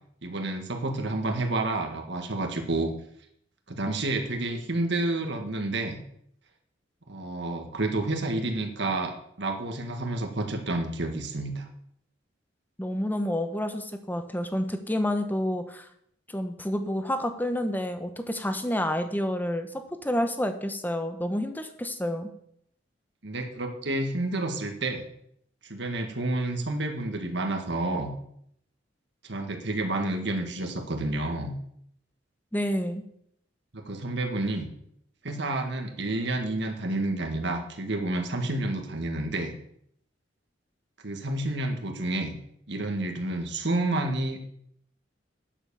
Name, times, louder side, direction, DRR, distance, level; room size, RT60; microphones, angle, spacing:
voice 1, 0.2-2.9 3.7-6.0 7.1-9.1 9.4-11.7 23.2-25.0 25.6-28.1 29.2-31.5 33.7-34.7 35.2-39.5 41.0-42.4 42.7-44.4, right 2 dB, 65° right, 4 dB, 1.9 m, -29 dB
voice 2, 12.8-15.9 16.3-22.3 32.5-33.0, left 1 dB, 10° left, 7 dB, 1.1 m, -29 dB
9.8 x 7.2 x 7.1 m, 0.70 s
head